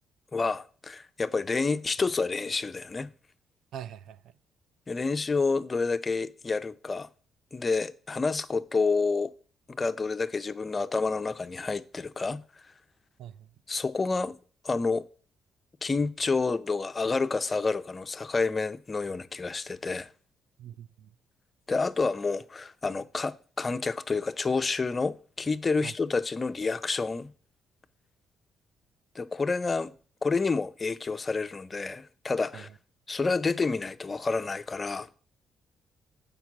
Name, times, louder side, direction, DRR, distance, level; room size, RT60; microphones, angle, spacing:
voice 1, 0.3-3.1 4.9-7.1 7.5-9.3 9.7-12.4 13.7-14.4 14.6-15.0 15.8-20.1 21.7-27.3 29.1-29.9 30.2-32.7 33.1-35.1, left 4 dB, 30° left, 0.5 m, -29 dB
voice 2, 3.7-4.3 13.2-13.5 20.6-21.1 25.8-25.9 32.5-32.6, right 10 dB, 80° right, 0.4 m, -43 dB
7.0 x 5.3 x 6.1 m
cardioid pair, 90°, 0 cm